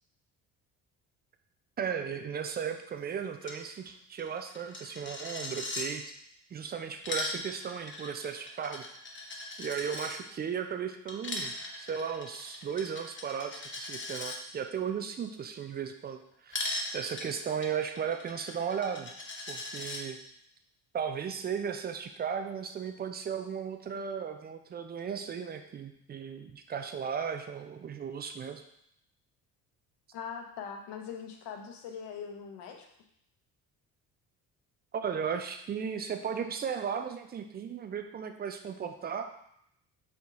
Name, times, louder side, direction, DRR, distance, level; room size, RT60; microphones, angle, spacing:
voice 1, 1.8-6.0 6.5-8.8 9.6-16.6 16.9-19.1 19.5-20.2 20.9-28.6 34.9-39.3, right 7 dB, 25° right, 7 dB, 0.3 m, -36 dB
Coin (dropping), 3.4-3.6 3.9-4.0 4.2-5.9 6.8-10.1 11.1-14.4 16.5-20.0, left 2 dB, 25° left, 0.9 m, -39 dB
voice 2, 30.1-32.9, left 7 dB, 55° left, 3 dB, 0.9 m, -41 dB
4.4 x 2.8 x 3.6 m, 0.74 s
hypercardioid pair, 50°, 49 cm